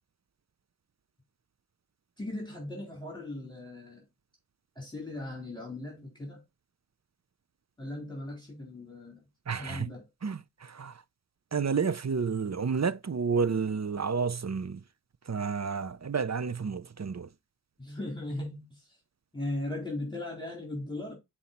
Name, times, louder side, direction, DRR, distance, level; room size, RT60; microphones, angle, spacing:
voice 1, 2.2-4.0 4.8-6.4 7.8-9.2 9.5-10.0 17.8-19.0 19.3-21.2, left 1 dB, 10° left, 3.8 m, -38 dB
voice 2, 9.5-9.9 10.2-10.9 11.5-14.8 15.3-17.3, right 5 dB, 40° right, 0.5 m, -30 dB
7.6 x 4.2 x 4.2 m
wide cardioid pair, 45°, 42 cm